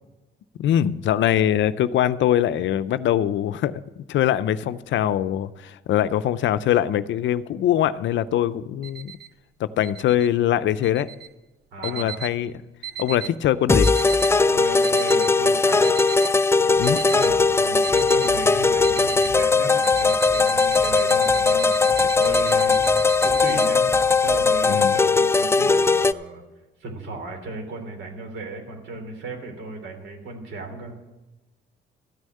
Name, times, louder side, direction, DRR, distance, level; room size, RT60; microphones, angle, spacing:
voice 1, 0.6-3.7 4.1-9.1 9.6-11.1 11.8-12.5 13.0-13.9 16.8-17.0 24.7-25.0, left 11 dB, 70° left, 15 dB, 0.5 m, -22 dB
sound 1, 8.8-9.3 9.8-10.3 10.8-11.3 11.8-12.4 12.8-13.4 13.8-14.4 14.8-15.4 15.8-16.4 16.8-17.4 17.8-18.4 18.8-19.4 19.8-23.7, right 10 dB, 55° right, 0.8 m, -36 dB
voice 2, 11.7-12.2 14.5-16.0 16.6-21.8 22.1-22.8 23.2-23.9 24.2-26.4 26.8-31.0, right 2 dB, 75° right, 3 dB, 3.2 m, -36 dB
sound 2, 13.7-26.1, left 4 dB, 15° left, 0.3 m, -19 dB
sound 3, 16.8-24.8, right 1 dB, 35° right, 2.5 m, -42 dB
13.5 x 6.4 x 8.6 m, 1.1 s
cardioid pair, 90°, 20 cm